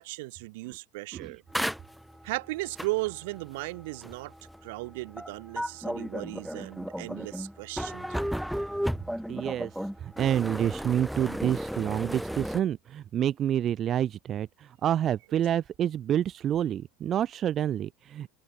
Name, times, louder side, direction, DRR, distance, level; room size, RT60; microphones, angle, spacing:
voice 1, 0.0-1.4 2.2-4.3 4.6-8.4, right 23 dB, 70° right, 2.4 m, -36 dB
sound 1, 1.5-12.6, equal, ahead, 5.3 m, -34 dB
voice 2, 9.3-18.3, right 10 dB, 40° right, 0.5 m, -28 dB
open air
hypercardioid pair, 85°, 0 cm